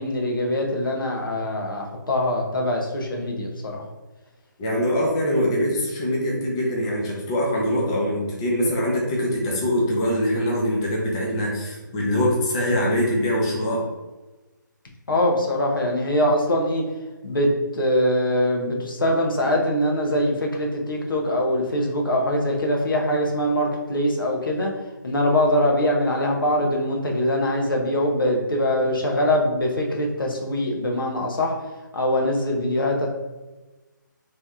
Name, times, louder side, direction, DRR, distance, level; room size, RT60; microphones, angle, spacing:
voice 1, 0.0-3.8 15.1-16.8 17.2-24.7 25.0-31.5 31.9-33.1, left 1 dB, 90° left, 0 dB, 1.1 m, -23 dB
voice 2, 4.6-13.8, equal, 10° left, -3 dB, 0.4 m, -23 dB
3.3 x 2.8 x 3.6 m, 1.1 s
hypercardioid pair, 170°, 11 cm